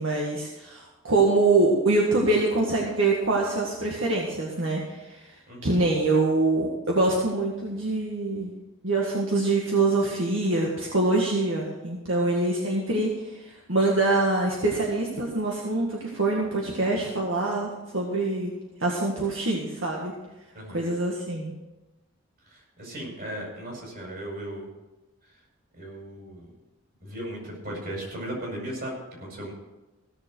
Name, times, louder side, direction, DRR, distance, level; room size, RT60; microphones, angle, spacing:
voice 1, 0.0-5.3 5.6-8.5 8.8-18.5 18.8-20.1 20.7-21.5, right 2 dB, 80° right, -2 dB, 1.8 m, -24 dB
voice 2, 22.4-24.7 25.3-25.4 25.7-26.5 27.0-29.5, right 1 dB, 50° right, -1 dB, 5.4 m, -37 dB
16.5 x 6.9 x 6.3 m, 1.0 s
head